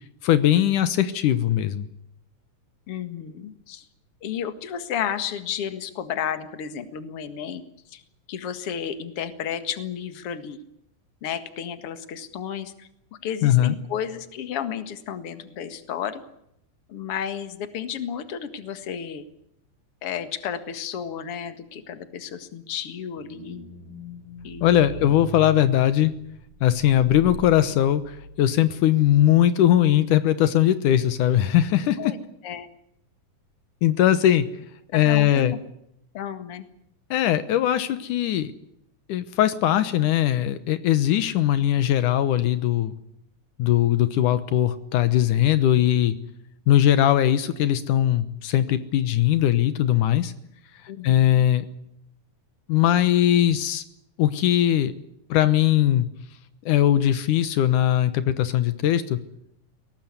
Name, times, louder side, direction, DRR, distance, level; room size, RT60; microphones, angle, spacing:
voice 1, 0.2-1.9 13.4-13.8 24.6-26.1 26.6-32.1 33.8-34.5 34.9-35.5 37.1-38.5 39.1-43.0 43.6-46.2 46.7-50.3 51.0-51.6 52.7-53.8 54.2-54.9 55.3-56.1 56.7-59.2, left 12 dB, 80° left, 12 dB, 2.6 m, -20 dB
voice 2, 2.9-3.8 4.2-7.6 7.9-8.0 8.3-10.6 11.2-12.9 13.2-16.2 16.9-19.3 20.0-23.7 24.4-25.1 32.0-32.2 32.4-32.7 34.9-35.6 36.1-36.7 50.9-51.4, left 8 dB, 50° left, 10 dB, 2.5 m, -32 dB
sound 1, 23.1-28.8 29.2-29.3, right 3 dB, 35° right, 5.4 m, -41 dB
22.5 x 18.5 x 9.6 m, 0.77 s
omnidirectional pair, 3.6 m